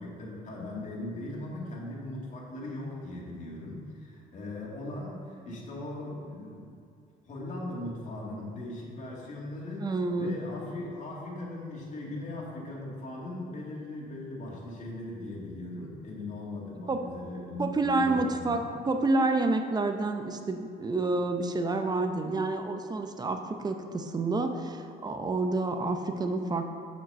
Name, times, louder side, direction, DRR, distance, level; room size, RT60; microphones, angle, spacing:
voice 1, 0.0-6.7 7.2-9.9 10.2-18.6, left 1 dB, 45° left, -4 dB, 2.2 m, -39 dB
voice 2, 9.8-10.4 16.9-17.1 17.6-26.7, right 2 dB, 25° right, 6 dB, 0.6 m, -29 dB
7.2 x 5.3 x 6.8 m, 2.4 s
cardioid pair, 110°, 17 cm